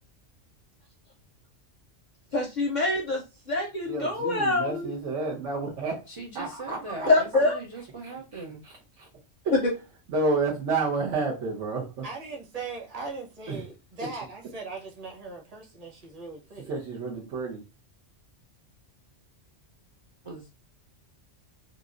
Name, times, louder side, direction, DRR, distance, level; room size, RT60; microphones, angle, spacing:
voice 1, 2.3-4.9 7.1-7.6 9.6-9.7, left 2 dB, 55° left, 0.5 m, -25 dB
voice 2, 3.9-6.0 6.3-7.1 8.0-9.1 9.4-9.5 10.1-12.1 13.5-13.6 16.7-17.6, right 3 dB, 85° right, 1.1 m, -30 dB
voice 3, 6.1-8.6 20.2-20.5, right 3 dB, 55° right, 0.3 m, -40 dB
voice 4, 12.0-16.7, right 4 dB, 35° right, 0.9 m, -39 dB
3.0 x 2.5 x 2.4 m
omnidirectional pair, 1.2 m